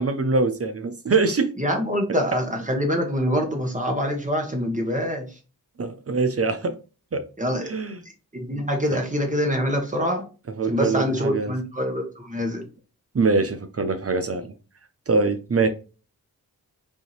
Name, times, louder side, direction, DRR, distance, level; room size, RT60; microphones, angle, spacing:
voice 1, 0.0-1.5 2.1-2.2 5.8-6.7 7.1-7.2 7.7-8.0 8.9-9.0 10.6-11.5 13.1-14.5 15.1-15.7, right 4 dB, 40° right, 0.8 m, -23 dB
voice 2, 1.6-5.3 7.4-7.7 8.3-10.3 10.7-12.6, equal, 20° right, 1.4 m, -25 dB
5.4 x 2.8 x 3.2 m
cardioid pair, 55°, 37 cm